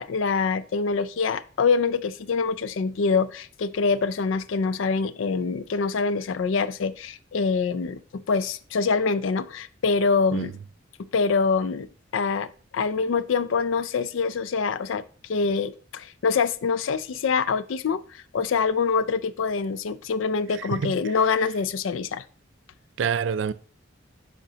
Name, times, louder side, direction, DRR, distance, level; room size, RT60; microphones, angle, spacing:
voice 1, 0.0-10.5 11.1-11.9 12.1-22.2, left 5 dB, 75° left, 0.4 m, -25 dB
voice 2, 20.6-20.9 23.0-23.5, right 7 dB, 65° right, 0.4 m, -27 dB
8.8 x 5.1 x 2.8 m
head